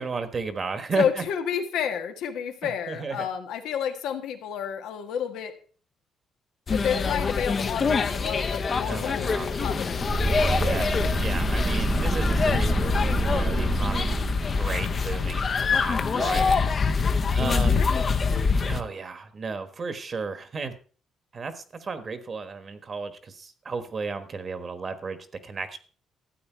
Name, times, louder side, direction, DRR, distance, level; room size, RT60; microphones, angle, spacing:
voice 1, 0.0-1.2 2.6-3.3 8.9-9.6 10.5-12.9 13.2-14.1 14.5-16.6 17.3-17.8 18.6-20.7 21.3-25.8, right 4 dB, 35° right, 10 dB, 1.3 m, -34 dB
voice 2, 1.0-5.5 6.7-10.0 10.8-11.1 16.1-16.8 17.7-18.1, left 8 dB, 90° left, 6 dB, 1.6 m, -31 dB
sound 1, 6.7-18.8, left 5 dB, 35° left, 0.7 m, -25 dB
sound 2, 9.9-14.8, right 3 dB, 15° right, 0.5 m, -27 dB
13.0 x 8.4 x 4.5 m, 0.41 s
cardioid pair, 125°, 0 cm